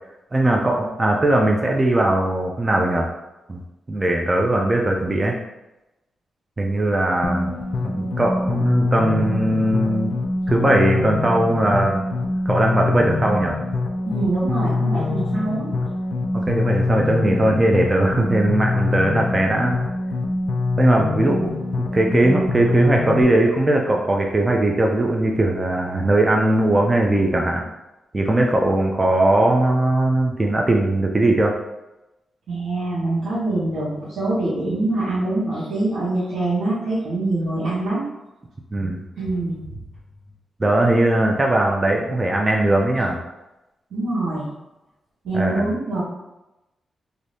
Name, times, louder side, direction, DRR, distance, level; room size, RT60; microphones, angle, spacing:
voice 1, 0.3-3.1 3.5-3.6 3.9-5.4 6.6-7.5 7.8-10.1 10.5-12.1 12.5-13.5 16.3-19.8 20.8-21.5 21.9-27.6 28.1-31.5 38.7-39.0 40.6-43.2 45.3-45.7, right 1 dB, 25° right, 0 dB, 0.4 m, -19 dB
sound 1, 7.2-23.2, left 3 dB, 60° left, 0.4 m, -24 dB
voice 2, 14.1-15.7 32.5-38.0 39.2-39.8 43.9-44.5 45.2-46.0, right 2 dB, 80° right, -12 dB, 1.1 m, -24 dB
2.6 x 2.6 x 3.3 m, 0.97 s
cardioid pair, 90°, 0 cm